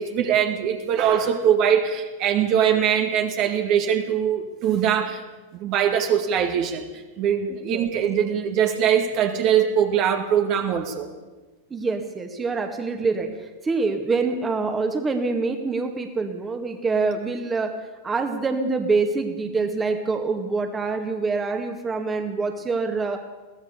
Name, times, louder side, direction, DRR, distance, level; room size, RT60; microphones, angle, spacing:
voice 1, 0.0-5.2 5.5-11.1, right 8 dB, 40° right, 5 dB, 1.9 m, -22 dB
voice 2, 7.5-7.9 11.7-17.7 18.0-23.2, right 4 dB, 15° right, 6 dB, 2.2 m, -25 dB
22.0 x 17.0 x 7.0 m, 1.2 s
figure-of-eight pair, 90°, 0 cm